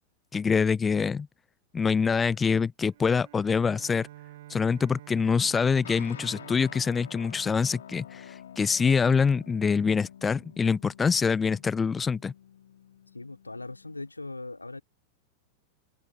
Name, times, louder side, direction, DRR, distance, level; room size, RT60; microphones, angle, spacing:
voice 1, 0.3-1.3 1.7-4.1 4.5-12.3, left 5 dB, 15° left, 0.5 m, -25 dB
Bowed string instrument, 2.9-8.4, right 15 dB, 55° right, 1.8 m, -50 dB
sound 1, 5.8-14.1, left 9 dB, 65° left, 4.8 m, -48 dB
voice 2, 13.1-14.8, left 2 dB, 85° left, 3.2 m, -40 dB
figure-of-eight pair, 90°, 0 cm